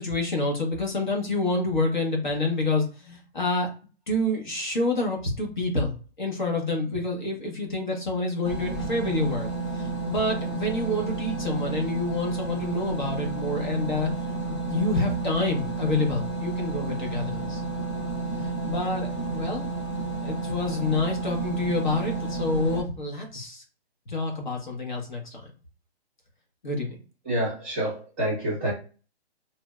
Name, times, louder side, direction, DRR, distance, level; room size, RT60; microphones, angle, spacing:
voice 1, 0.0-3.7 4.1-9.5 9.7-14.1 14.5-17.6 18.6-19.7 20.2-23.6 24.1-25.5 26.6-27.0, left 2 dB, 45° left, 0 dB, 1.0 m, -28 dB
sound 1, 8.4-22.8, right 3 dB, 30° left, 0.5 m, -31 dB
voice 2, 27.2-28.7, right 1 dB, 10° right, -7 dB, 0.8 m, -27 dB
4.2 x 2.1 x 2.3 m, 0.37 s
hypercardioid pair, 175°, 33 cm